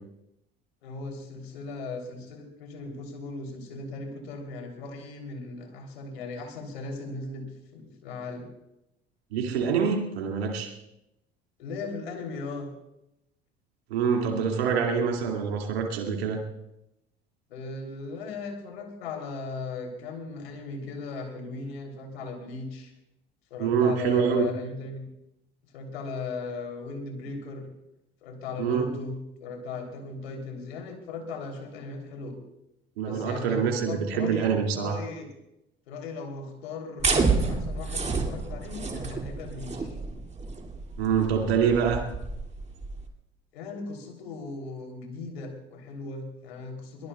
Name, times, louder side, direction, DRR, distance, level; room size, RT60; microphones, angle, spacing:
voice 1, 0.8-7.5 7.7-8.5 11.6-12.7 17.5-22.9 23.5-25.0 25.7-27.7 28.2-32.4 33.0-35.3 35.9-40.0 43.5-47.1, left 3 dB, 75° left, 3 dB, 3.3 m, -37 dB
voice 2, 9.3-10.7 13.9-16.4 23.6-24.5 28.6-28.9 33.0-35.0 41.0-42.0, right 6 dB, 75° right, 2 dB, 2.4 m, -25 dB
sound 1, 37.0-43.1, right 4 dB, 20° right, 2.4 m, -29 dB
22.5 x 19.5 x 2.3 m, 0.85 s
figure-of-eight pair, 60°, 31 cm